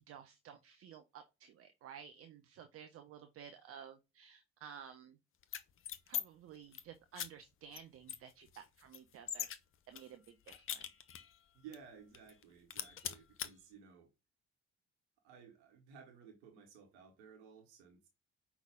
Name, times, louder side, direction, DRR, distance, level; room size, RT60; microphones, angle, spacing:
voice 1, 0.0-5.2 6.1-9.5 9.9-10.9, right 8 dB, 40° right, 0.6 m, -54 dB
sound 1, 5.4-6.2 6.5-6.8 7.1-7.3 7.7-7.8 8.1-9.6 9.9-11.4 11.7-11.8 12.1-12.4 12.7-13.5, left 10 dB, 40° left, 0.6 m, -41 dB
voice 2, 11.5-14.1 15.2-18.1, right 7 dB, 70° right, 1.1 m, -57 dB
5.5 x 2.3 x 3.5 m
figure-of-eight pair, 45°, 35 cm